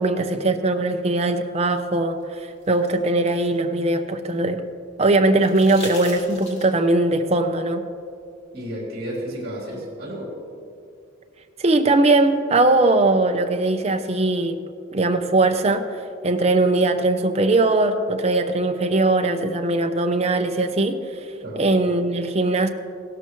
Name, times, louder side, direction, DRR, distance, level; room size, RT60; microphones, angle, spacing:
voice 1, 0.0-4.6 5.0-7.8 11.6-14.6 14.9-21.0 21.6-22.7, right 2 dB, 30° right, 6 dB, 0.6 m, -20 dB
sound 1, 2.2-4.5 5.4-6.9 8.6-8.7, left 1 dB, 30° left, 2.6 m, -41 dB
voice 2, 8.5-10.4 21.4-21.7, equal, 50° right, -3 dB, 3.1 m, -32 dB
16.5 x 13.0 x 3.1 m, 2.4 s
head